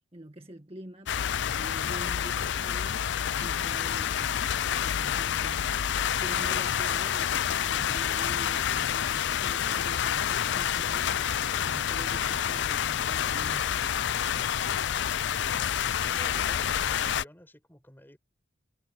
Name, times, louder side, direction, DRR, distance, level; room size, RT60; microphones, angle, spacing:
voice 1, 0.0-4.4 4.7-11.3 11.7-13.8, right 1 dB, 30° right, 1.8 m, -46 dB
sound 1, 1.1-17.2, left 9 dB, 60° left, 0.4 m, -28 dB
voice 2, 15.2-18.2, equal, 10° left, 5.5 m, -52 dB
head